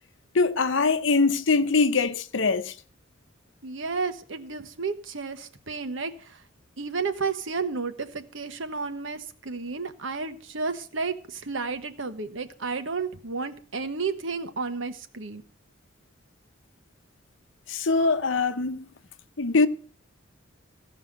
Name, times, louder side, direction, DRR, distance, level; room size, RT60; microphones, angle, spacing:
voice 1, 0.3-2.7 17.7-18.8 19.4-19.7, left 4 dB, 65° left, 0.8 m, -23 dB
voice 2, 3.6-6.4 6.8-15.4, right 4 dB, 65° right, 1.2 m, -32 dB
15.5 x 5.7 x 7.8 m
head